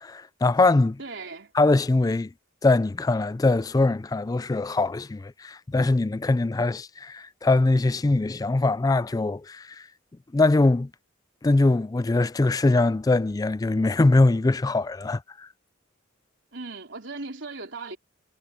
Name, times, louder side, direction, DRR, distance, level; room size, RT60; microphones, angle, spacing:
voice 1, 0.0-1.0 1.6-2.3 2.6-9.8 10.3-10.9 11.4-15.5, left 2 dB, 20° left, 0.3 m, -22 dB
voice 2, 1.0-1.5 16.5-18.0, right 3 dB, 60° right, 4.3 m, -37 dB
head